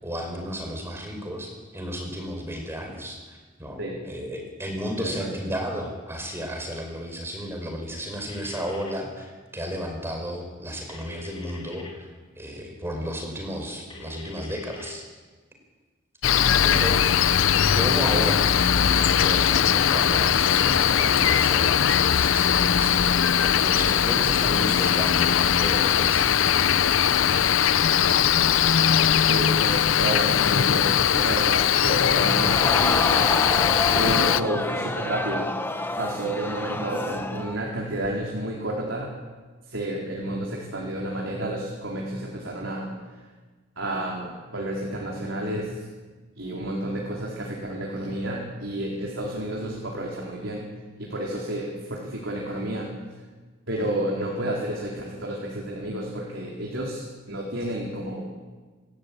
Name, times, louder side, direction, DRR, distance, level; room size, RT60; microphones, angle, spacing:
voice 1, 0.0-12.1 12.3-15.0 16.3-17.0 17.7-26.7, equal, 10° right, 2 dB, 4.9 m, -33 dB
voice 2, 5.0-5.3 29.3-32.9 33.9-35.5 36.0-39.1 39.7-42.9 43.8-45.8 46.4-50.6 51.0-52.9 53.7-58.4, right 1 dB, 70° right, -2 dB, 4.1 m, -30 dB
sound 1, 8.3-8.9 10.9-11.9 13.9-14.9 16.9-17.9, left 4 dB, 25° left, 3.6 m, -42 dB
Cricket, 16.2-34.4, left 8 dB, 75° left, 0.6 m, -20 dB
Crowd, 32.1-37.6 38.0-38.1, left 2 dB, 10° left, 1.0 m, -29 dB
27.5 x 13.5 x 8.7 m, 1.4 s
head